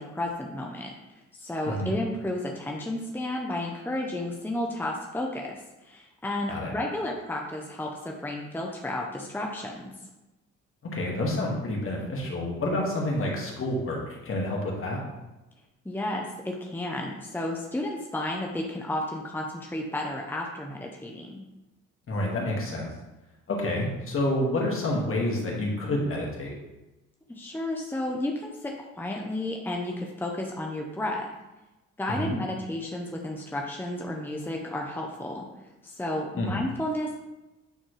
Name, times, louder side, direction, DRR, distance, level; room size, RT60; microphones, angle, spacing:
voice 1, 0.0-9.9 15.8-21.4 27.3-31.3 32.0-35.5 35.8-37.1, left 1 dB, 5° left, 0 dB, 0.8 m, -32 dB
voice 2, 10.8-15.0 22.1-22.9 23.5-26.5 32.1-32.3 36.4-36.5, left 1 dB, 45° left, -2 dB, 2.0 m, -28 dB
9.1 x 4.2 x 3.3 m, 1.0 s
cardioid pair, 90°, 30 cm